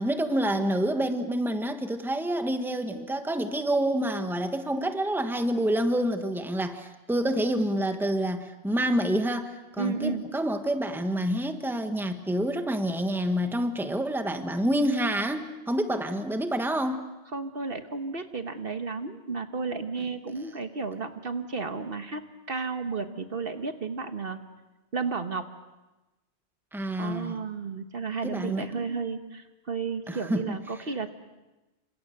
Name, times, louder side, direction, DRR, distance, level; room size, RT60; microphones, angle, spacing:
voice 1, 0.0-17.0 26.7-27.4 28.2-28.9 30.1-30.6, right 1 dB, ahead, 7 dB, 1.4 m, -28 dB
voice 2, 9.8-10.2 17.3-22.2 22.5-24.4 24.9-25.4 27.0-31.1, right 4 dB, 55° right, 7 dB, 1.5 m, -33 dB
29.0 x 26.0 x 6.6 m, 1.1 s
omnidirectional pair, 1.2 m